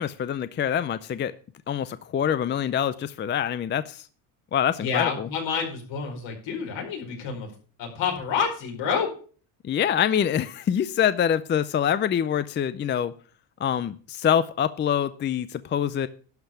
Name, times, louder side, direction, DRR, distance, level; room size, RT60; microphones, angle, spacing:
voice 1, 0.0-1.3 1.7-4.0 4.5-5.3 9.6-13.1 13.6-16.1, left 9 dB, 25° left, 14 dB, 0.4 m, -25 dB
voice 2, 4.8-7.5 7.8-9.1, left 6 dB, 70° left, 1 dB, 4.8 m, -28 dB
11.5 x 5.5 x 7.0 m, 0.41 s
cardioid pair, 125°, 46 cm